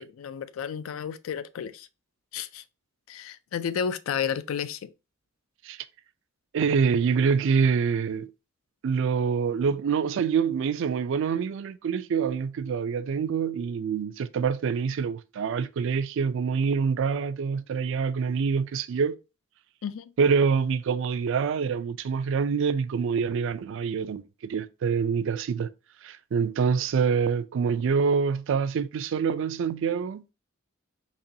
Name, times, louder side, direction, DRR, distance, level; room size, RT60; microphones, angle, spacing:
voice 1, 0.0-1.9 2.3-2.6 3.1-4.9 19.8-20.1, left 7 dB, 80° left, 0.4 m, -32 dB
voice 2, 6.5-8.3 8.8-19.2 20.2-25.7 26.0-30.2, right 6 dB, 65° right, 0.3 m, -26 dB
4.2 x 2.9 x 2.6 m
head